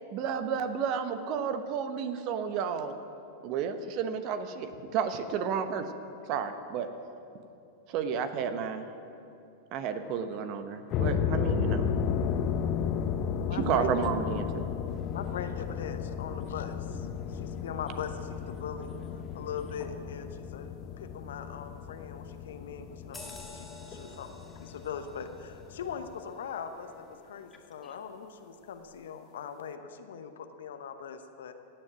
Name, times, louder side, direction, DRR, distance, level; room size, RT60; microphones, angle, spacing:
voice 1, 0.1-2.9 3.4-5.9 6.3-6.9 7.9-8.9 9.7-11.9 13.5-14.7, right 7 dB, 50° right, 9 dB, 1.1 m, -31 dB
sound 1, 10.9-26.1, left 7 dB, 40° left, 0.8 m, -34 dB
voice 2, 13.2-13.9 15.1-16.9 17.4-18.9 19.3-23.7 24.0-24.3 24.6-31.5, left 7 dB, 70° left, 7 dB, 1.0 m, -41 dB
voice 3, 14.9-15.2 16.2-16.4 16.9-17.7 18.9-19.9 23.1-24.8 27.8-28.0, left 3 dB, 25° left, 1 dB, 2.3 m, -53 dB
sound 2, 23.1-28.1 28.5-28.7, left 2 dB, 10° left, 3.4 m, -51 dB
16.0 x 7.7 x 9.4 m, 2.7 s
hypercardioid pair, 95°, 0 cm